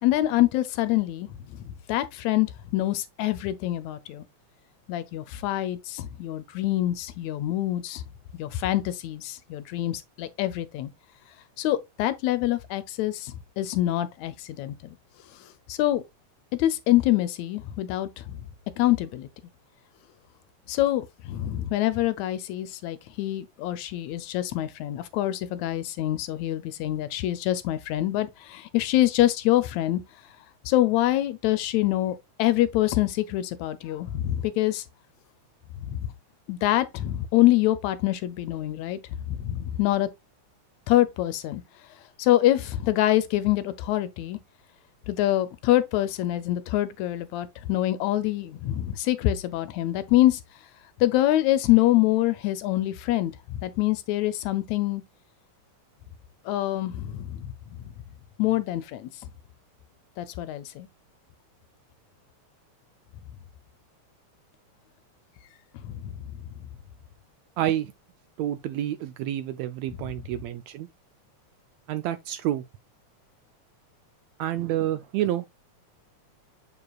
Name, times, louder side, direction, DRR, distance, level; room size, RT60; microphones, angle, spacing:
voice 1, 0.0-4.2 4.9-8.0 8.3-10.9 11.6-15.0 15.7-16.0 16.5-18.4 18.8-19.3 20.7-30.0 30.7-34.9 35.8-36.1 36.5-39.0 39.3-40.1 40.9-41.6 42.2-44.4 45.1-50.4 51.0-55.0 56.5-57.5 58.4-59.3 60.2-60.9 65.8-66.1 66.5-66.6, left 14 dB, 75° left, 1.8 m, -25 dB
voice 2, 67.6-67.9 68.4-70.9 71.9-72.6 74.4-75.4, right 12 dB, 80° right, 1.6 m, -28 dB
6.9 x 6.7 x 2.3 m
omnidirectional pair, 3.5 m